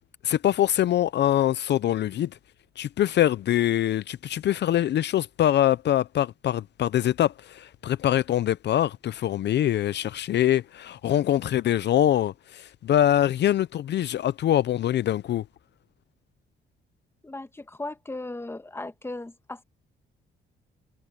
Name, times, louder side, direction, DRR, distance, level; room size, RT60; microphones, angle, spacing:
voice 1, 0.2-2.4 2.8-15.4, left 12 dB, 60° left, 0.6 m, -24 dB
voice 2, 17.2-19.6, left 2 dB, 10° left, 1.3 m, -37 dB
cardioid pair, 90°, 20 cm